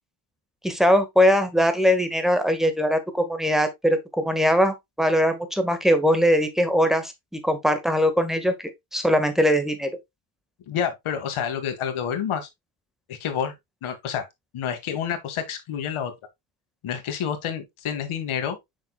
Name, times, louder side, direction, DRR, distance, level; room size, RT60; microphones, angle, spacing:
voice 1, 0.6-8.5 8.9-9.9, equal, ahead, 1.5 m, -21 dB
voice 2, 10.7-12.5 13.1-13.5 13.8-14.3 14.5-16.1 16.8-18.6, left 8 dB, 85° left, 2.0 m, -28 dB
7.4 x 5.8 x 2.3 m
cardioid pair, 115°, 48 cm